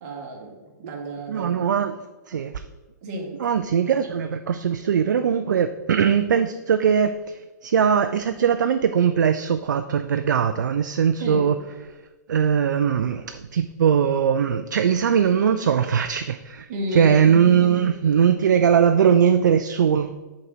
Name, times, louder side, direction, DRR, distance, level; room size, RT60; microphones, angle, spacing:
voice 1, 0.0-1.8 3.0-3.4 11.2-11.5 16.7-17.9, right 1 dB, 45° right, 1 dB, 1.6 m, -32 dB
voice 2, 1.3-1.9 2.3-2.6 3.4-11.6 12.3-16.7 16.9-20.2, right 7 dB, 75° right, 9 dB, 0.4 m, -20 dB
5.3 x 4.0 x 5.8 m, 1.2 s
hypercardioid pair, 120°, 10 cm